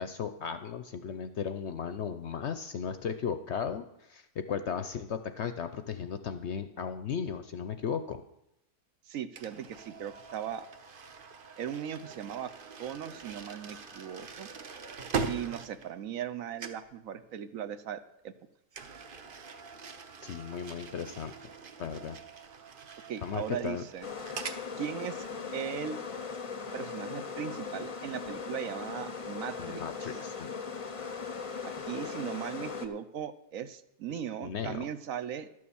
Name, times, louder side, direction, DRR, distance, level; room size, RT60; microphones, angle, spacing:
voice 1, 0.0-8.2 20.2-21.3 21.8-22.2 23.2-23.8 29.6-30.5 34.1-34.9, left 7 dB, 60° left, 10 dB, 0.8 m, -36 dB
voice 2, 9.1-10.6 11.6-12.5 12.8-14.5 15.2-18.3 23.1-24.1 24.8-26.0 26.7-30.1 31.6-35.5, right 9 dB, 65° right, 12 dB, 1.0 m, -38 dB
sound 1, 9.4-16.3 16.6-16.9 18.7-24.6, right 5 dB, 45° right, 0.8 m, -42 dB
sound 2, 24.0-32.9, left 5 dB, 30° left, 0.6 m, -39 dB
12.5 x 6.7 x 7.0 m, 0.80 s
omnidirectional pair, 1.6 m